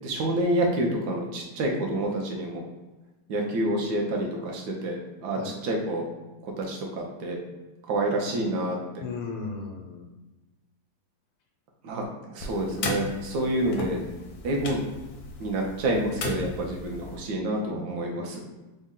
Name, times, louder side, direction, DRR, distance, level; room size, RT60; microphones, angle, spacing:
voice 1, 0.0-2.6 3.3-6.1 6.4-7.4 7.9-9.0 11.8-14.0 14.4-14.8 15.4-18.4, right 1 dB, 75° right, 0 dB, 0.9 m, -28 dB
voice 2, 9.0-10.1 17.6-18.2, left 4 dB, 90° left, 1 dB, 1.6 m, -37 dB
sound 1, 12.4-17.2, left 3 dB, 75° left, 1.0 m, -36 dB
4.1 x 2.1 x 3.7 m, 1.1 s
omnidirectional pair, 2.4 m